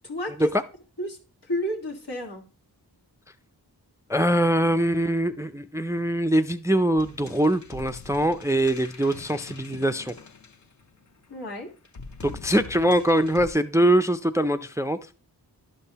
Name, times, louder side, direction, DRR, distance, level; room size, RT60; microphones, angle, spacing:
voice 1, 0.0-0.5 1.0-1.2 1.5-2.4 11.3-11.7, left 1 dB, 80° left, 1.7 m, -30 dB
voice 2, 4.1-10.1 12.2-15.2, right 1 dB, 10° right, 0.3 m, -23 dB
sound 1, 7.0-11.0 11.9-13.5, left 4 dB, 45° left, 0.7 m, -43 dB
11.5 x 5.4 x 2.8 m
wide cardioid pair, 45°, 40 cm